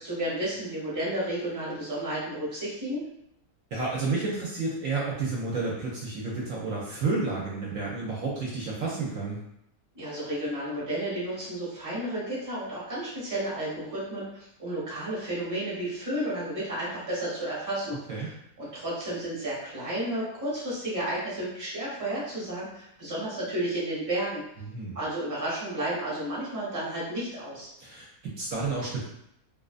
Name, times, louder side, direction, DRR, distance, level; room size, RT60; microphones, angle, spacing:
voice 1, 0.0-3.0 9.9-24.4 24.9-27.7, right 1 dB, 15° right, -8 dB, 0.8 m, -32 dB
voice 2, 3.7-9.4 18.1-18.3 24.7-25.0 27.8-29.0, right 3 dB, 70° right, -4 dB, 0.9 m, -31 dB
2.4 x 2.3 x 2.4 m, 0.77 s
omnidirectional pair, 1.6 m